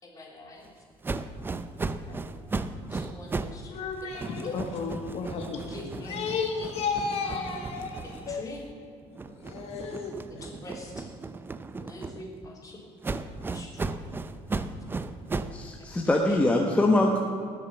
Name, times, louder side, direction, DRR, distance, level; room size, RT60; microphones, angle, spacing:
voice 1, 0.0-0.7 2.1-2.4 2.9-3.8 4.1-4.5 5.5-6.2 6.9-7.5 8.0-8.6 10.3-11.1 11.8-12.8 13.1-14.3 15.3-16.4, left 1 dB, 30° left, -1 dB, 3.5 m, -45 dB
sound 1, 1.0-3.6 3.9-8.7 9.1-12.5 13.0-15.6, right 3 dB, 15° right, 0.6 m, -36 dB
voice 2, 3.7-5.6 6.0-8.5 9.3-10.4, left 5 dB, 60° left, 3 dB, 1.3 m, -33 dB
voice 3, 15.5-17.2, left 1 dB, 10° left, 0 dB, 1.1 m, -23 dB
19.0 x 6.8 x 7.1 m, 2.4 s
cardioid pair, 130°, 12 cm